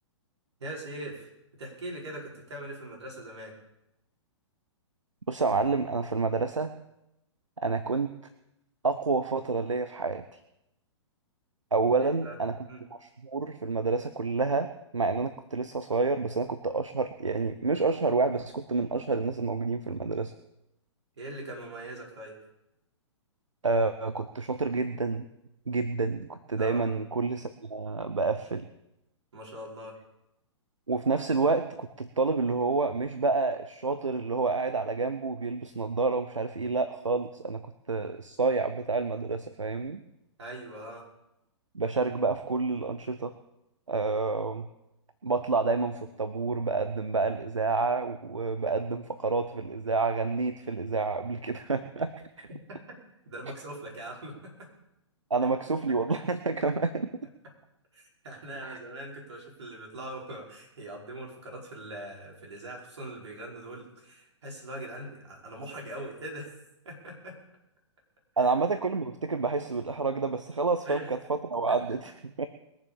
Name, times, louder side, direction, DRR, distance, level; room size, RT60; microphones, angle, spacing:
voice 1, 0.6-1.3 1.6-3.6 12.0-12.4 12.7-12.8 21.2-22.4 26.6-26.8 29.3-30.0 40.4-41.1 52.5-53.0 53.3-54.7 55.7-55.8 57.9-66.6 66.9-67.4 68.3-68.5 70.8-71.1 71.7-71.8, right 1 dB, 65° right, -1 dB, 5.2 m, -41 dB
voice 2, 5.3-6.7 7.6-8.1 8.8-10.4 11.7-12.5 13.0-20.3 23.6-25.2 25.7-28.7 30.9-37.6 37.9-40.0 41.7-43.3 43.9-44.7 45.2-52.1 52.4-52.5 55.3-57.1 58.6-58.8 68.4-72.5, right 3 dB, 85° right, 10 dB, 0.8 m, -29 dB
21.0 x 7.4 x 7.1 m, 0.90 s
figure-of-eight pair, 115°, 16 cm